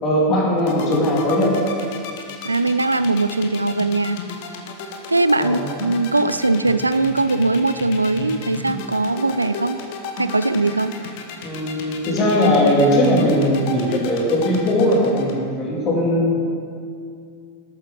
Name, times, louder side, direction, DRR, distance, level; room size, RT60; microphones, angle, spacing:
voice 1, 0.0-1.5 5.4-5.6 11.4-16.4, left 1 dB, 30° left, -3 dB, 2.5 m, -19 dB
sound 1, 0.6-15.3, left 5 dB, 50° left, 1.0 m, -33 dB
voice 2, 2.4-4.2 5.1-9.8 10.2-10.9, right 2 dB, 80° right, 12 dB, 0.3 m, -20 dB
11.5 x 8.8 x 3.8 m, 2.3 s
figure-of-eight pair, 90°, 0 cm